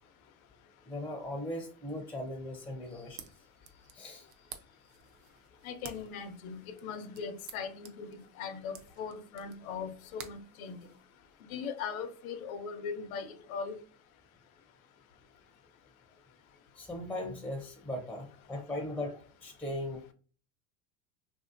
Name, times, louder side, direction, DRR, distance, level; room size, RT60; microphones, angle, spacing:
voice 1, 0.8-3.3 3.6-4.5 4.8-4.9 16.8-20.1, left 1 dB, 5° left, 0.5 m, -39 dB
sound 1, 2.8-11.4, right 8 dB, 45° right, 0.6 m, -53 dB
voice 2, 5.6-10.8 11.5-13.8, left 6 dB, 85° left, 0.7 m, -40 dB
3.0 x 2.7 x 2.5 m
supercardioid pair, 105°, 41 cm